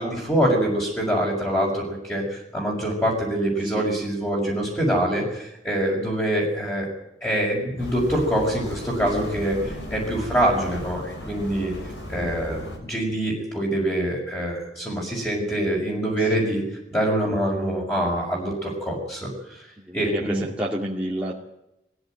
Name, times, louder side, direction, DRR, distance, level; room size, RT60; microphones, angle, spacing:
voice 1, 0.0-6.9 7.2-11.7 12.1-16.6 16.9-19.6 19.9-20.4, right 1 dB, 15° left, -5 dB, 5.8 m, -25 dB
voice 2, 3.6-3.9 16.2-16.5 19.8-21.4, equal, 5° right, -5 dB, 2.4 m, -30 dB
sound 1, 7.8-12.8, left 1 dB, 85° left, 5.4 m, -35 dB
21.0 x 16.0 x 9.1 m, 0.85 s
head